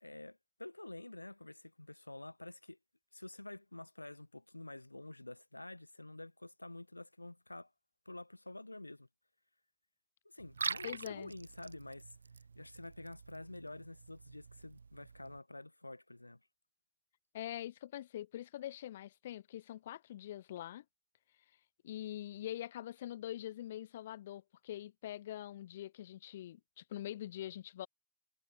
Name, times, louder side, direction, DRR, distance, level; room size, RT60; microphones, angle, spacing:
voice 1, 0.0-2.8 3.1-7.7 8.0-9.1 10.2-12.2 12.5-16.4, left 2 dB, 85° left, 1.1 m, -49 dB
Liquid, 10.4-15.4, right 5 dB, 75° right, 1.0 m, -45 dB
voice 2, 10.8-11.3 17.3-20.8 21.8-27.9, left 12 dB, 60° left, 0.4 m, -44 dB
figure-of-eight pair, 90°, 0 cm